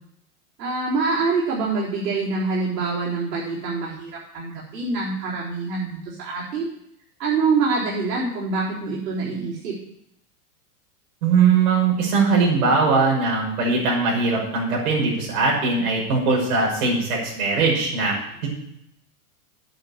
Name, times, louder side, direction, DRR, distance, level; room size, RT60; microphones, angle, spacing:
voice 1, 0.6-6.7 7.2-9.8, right 4 dB, 85° right, -7 dB, 4.2 m, -25 dB
voice 2, 11.2-18.5, right 4 dB, 60° right, -2 dB, 5.7 m, -20 dB
8.7 x 6.9 x 8.7 m, 0.76 s
supercardioid pair, 160°, 47 cm